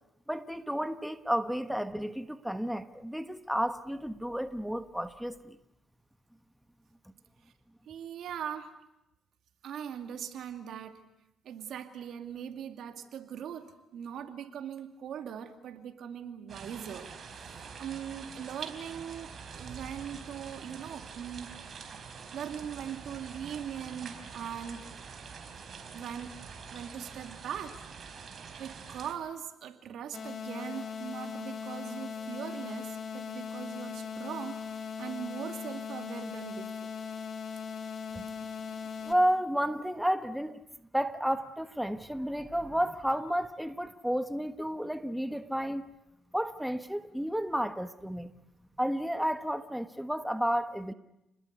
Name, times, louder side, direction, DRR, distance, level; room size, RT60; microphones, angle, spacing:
voice 1, 0.3-5.6 38.1-38.3 39.0-40.6 40.9-45.8 46.3-48.3 48.8-50.9, equal, ahead, 1.3 m, -31 dB
voice 2, 7.9-8.7 9.6-11.0 11.4-21.5 22.3-24.9 25.9-26.4 26.7-27.8 28.1-28.2 28.6-36.9, right 9 dB, 75° right, 2.4 m, -41 dB
sound 1, 16.5-29.1, right 5 dB, 50° right, 4.3 m, -45 dB
sound 2, 30.1-39.1, left 6 dB, 55° left, 3.1 m, -39 dB
29.5 x 20.5 x 8.2 m
cardioid pair, 90°, 0 cm